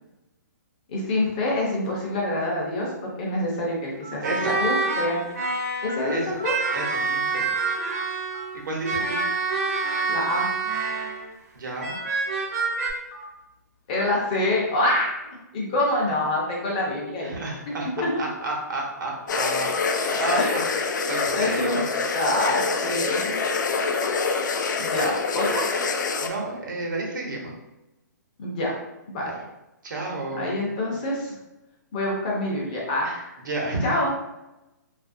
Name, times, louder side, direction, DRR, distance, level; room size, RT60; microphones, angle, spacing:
voice 1, 0.9-5.2 5.8-6.2 6.4-6.5 10.1-10.5 13.9-17.4 18.0-18.2 19.9-20.5 21.3-21.8 22.1-23.4 24.8-25.6 28.4-28.8 29.1-29.3 30.4-31.3 31.9-33.3 33.8-34.1, left 1 dB, 25° left, -3 dB, 0.5 m, -26 dB
sound 1, 1.9-2.1 2.8-2.9 4.0-4.1 4.8-4.9 5.4-5.5 5.9-7.0 7.3-8.0 8.3-8.4 9.7-10.0 10.4-10.5 11.9-12.1 12.5-12.7 13.1-13.2 13.9-14.0, equal, 45° left, 0.9 m, -40 dB
sound 2, 4.2-6.1 6.4-11.3 11.8-12.9, right 4 dB, 50° right, 0.6 m, -27 dB
voice 2, 4.2-4.6 6.1-6.4 6.7-7.5 8.5-9.2 11.5-11.9 17.2-21.8 26.2-27.5 29.2-29.3 29.8-30.6 33.4-34.0, right 2 dB, 85° right, -1 dB, 0.9 m, -31 dB
sound 3, 19.3-26.3, left 4 dB, 75° left, 0.4 m, -26 dB
2.7 x 2.4 x 2.6 m, 0.97 s
hypercardioid pair, 170°, 10 cm